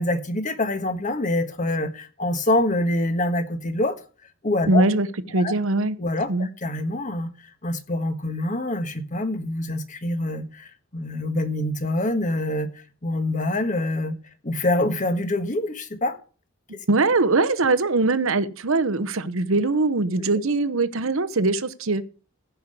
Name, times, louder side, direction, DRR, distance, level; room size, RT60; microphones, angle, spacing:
voice 1, 0.0-4.0 4.4-4.8 5.3-5.5 6.0-7.3 7.6-12.7 13.0-14.1 14.4-16.2, left 1 dB, 35° left, 1.4 m, -25 dB
voice 2, 4.7-5.1 5.3-6.0 6.3-6.5 16.7-22.0, right 3 dB, 65° right, 0.9 m, -22 dB
15.5 x 5.6 x 6.7 m
head